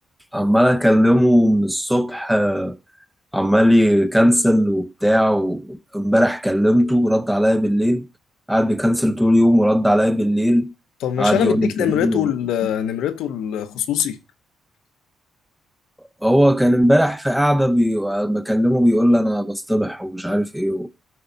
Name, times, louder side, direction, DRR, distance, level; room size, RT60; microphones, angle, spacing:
voice 1, 0.3-2.8 3.3-8.1 8.5-10.7 11.2-12.3 16.2-20.9, equal, 5° right, 0.7 m, -18 dB
voice 2, 11.0-14.2, left 10 dB, 85° left, 0.8 m, -23 dB
12.5 x 4.7 x 4.0 m
cardioid pair, 90°, 0 cm